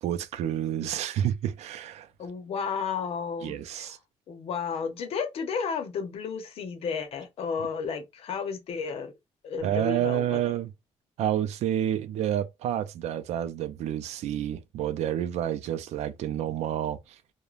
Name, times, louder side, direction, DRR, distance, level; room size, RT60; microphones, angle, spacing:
voice 1, 0.0-2.1 3.4-4.0 9.6-10.7 11.2-17.2, right 11 dB, 80° right, 0.4 m, -29 dB
voice 2, 2.2-3.9 4.3-9.1 9.4-10.4, left 6 dB, 65° left, 0.7 m, -32 dB
2.4 x 2.1 x 3.0 m
cardioid pair, 130°, 11 cm